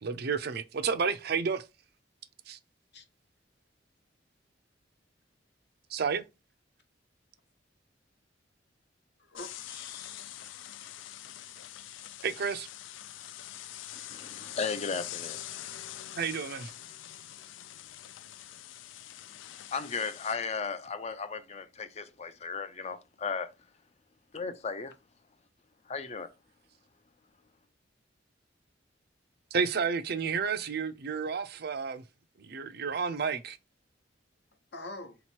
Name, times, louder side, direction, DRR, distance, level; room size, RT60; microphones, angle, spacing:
voice 1, 0.0-1.6 2.5-2.6 5.9-6.2 12.2-12.7 16.2-16.7 29.5-32.0 32.4-33.6, right 5 dB, 55° right, 0.5 m, -31 dB
voice 2, 9.2-10.7 34.7-35.2, left 2 dB, 65° left, 1.0 m, -46 dB
sound 1, 9.4-20.4, left 12 dB, 85° left, 0.3 m, -44 dB
voice 3, 13.9-15.4 19.7-23.5 24.3-24.9 25.9-26.3, left 5 dB, 35° left, 0.5 m, -35 dB
4.0 x 3.0 x 4.4 m
head